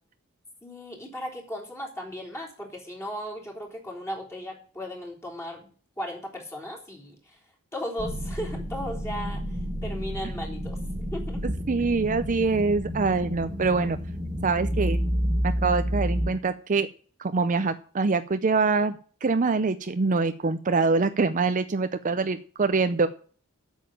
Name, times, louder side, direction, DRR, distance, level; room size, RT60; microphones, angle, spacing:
voice 1, 0.6-5.7 6.0-7.4 7.7-11.4, equal, 15° left, -1 dB, 3.6 m, -36 dB
sound 1, 8.0-16.3, equal, 20° right, 2.2 m, -30 dB
voice 2, 11.4-14.0 14.4-15.0 15.4-16.9 17.2-18.9 19.2-23.1, right 4 dB, 40° right, 11 dB, 0.5 m, -24 dB
8.6 x 7.3 x 8.7 m, 0.43 s
head